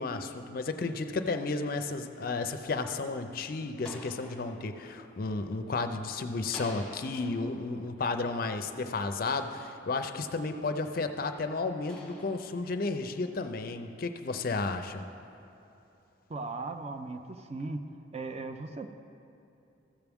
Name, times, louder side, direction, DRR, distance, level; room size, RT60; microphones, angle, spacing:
voice 1, 0.0-15.1, left 3 dB, 45° left, 8 dB, 0.4 m, -33 dB
sound 1, 3.5-6.0 6.5-10.2 10.8-13.5, left 1 dB, 5° left, 1.3 m, -51 dB
voice 2, 16.3-17.9 18.1-18.9, right 3 dB, 30° right, 7 dB, 0.4 m, -37 dB
14.5 x 7.0 x 3.5 m, 2.9 s
head